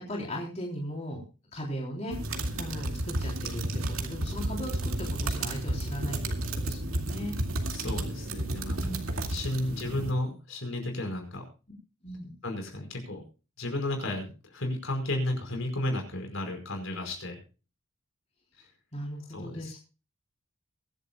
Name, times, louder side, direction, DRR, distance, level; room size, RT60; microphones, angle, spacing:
voice 1, 0.1-1.2 1.5-2.2 2.6-7.4 8.7-9.0 9.6-10.1 12.0-12.3 18.9-19.8, equal, 30° left, -1 dB, 3.6 m, -38 dB
sound 1, 2.1-10.1, right 1 dB, 85° right, 2.3 m, -32 dB
voice 2, 7.7-11.4 12.4-13.2 13.6-17.4 19.3-19.7, left 1 dB, 70° left, 3 dB, 5.1 m, -33 dB
23.5 x 11.0 x 2.3 m, 0.33 s
head